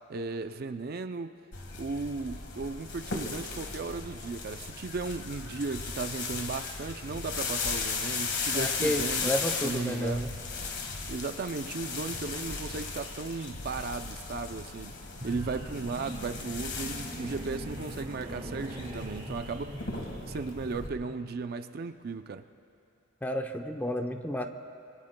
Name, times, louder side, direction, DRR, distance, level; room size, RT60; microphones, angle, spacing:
voice 1, 0.1-1.3 1.8-9.3 9.6-10.3 11.1-14.9 15.2-19.8 20.3-22.4, right 4 dB, 50° right, 9 dB, 0.4 m, -36 dB
sound 1, 1.5-20.9, left 4 dB, 60° left, 1.6 m, -36 dB
voice 2, 8.5-10.3 23.2-24.5, equal, 10° left, 5 dB, 0.7 m, -31 dB
sound 2, 15.1-21.3, equal, 35° right, 1.7 m, -43 dB
25.0 x 25.0 x 2.2 m, 2.5 s
head